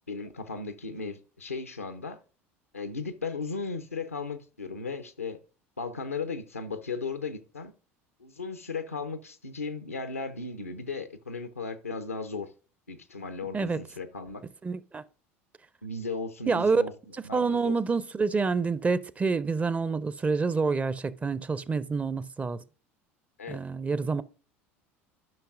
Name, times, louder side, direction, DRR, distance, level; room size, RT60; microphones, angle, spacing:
voice 1, 0.1-2.2 2.7-5.4 5.8-7.7 8.2-12.5 12.9-14.4 15.8-16.9 17.2-17.7 23.4-23.6, left 4 dB, 90° left, 0.6 m, -36 dB
voice 2, 14.6-15.0 16.5-16.8 17.1-22.6 23.5-24.2, right 4 dB, 20° right, 0.5 m, -27 dB
12.0 x 5.7 x 2.5 m
figure-of-eight pair, 70°, 7 cm